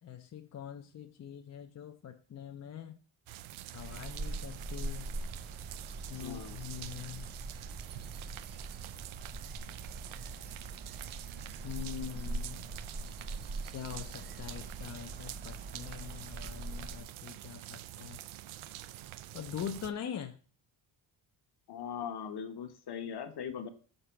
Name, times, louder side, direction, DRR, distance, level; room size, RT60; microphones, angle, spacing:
voice 1, 0.0-3.0 3.7-5.1 6.1-7.3 9.7-9.8 11.6-12.7 13.7-18.2 19.3-20.4, left 9 dB, 35° left, 0.5 m, -43 dB
sound 1, 3.3-19.9, right 14 dB, 80° right, 0.5 m, -47 dB
sound 2, 3.8-17.0, right 2 dB, 20° right, 0.6 m, -42 dB
voice 2, 6.2-6.6 21.7-23.7, left 7 dB, 55° left, 1.0 m, -40 dB
6.6 x 4.1 x 5.7 m
wide cardioid pair, 175°, 47 cm